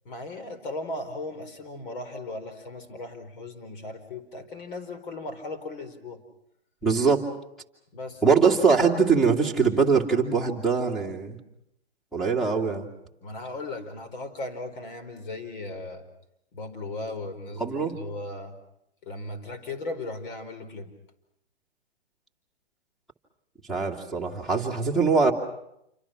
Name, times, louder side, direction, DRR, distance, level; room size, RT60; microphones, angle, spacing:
voice 1, 0.0-6.2 7.9-8.2 13.2-16.0 16.5-18.6 19.0-20.9, left 2 dB, 50° left, 7 dB, 4.6 m, -37 dB
voice 2, 6.8-7.2 8.2-11.4 12.1-12.9 17.6-17.9 23.7-25.3, right 5 dB, ahead, 2 dB, 2.4 m, -22 dB
28.5 x 25.0 x 6.0 m, 0.79 s
hypercardioid pair, 145°, 33 cm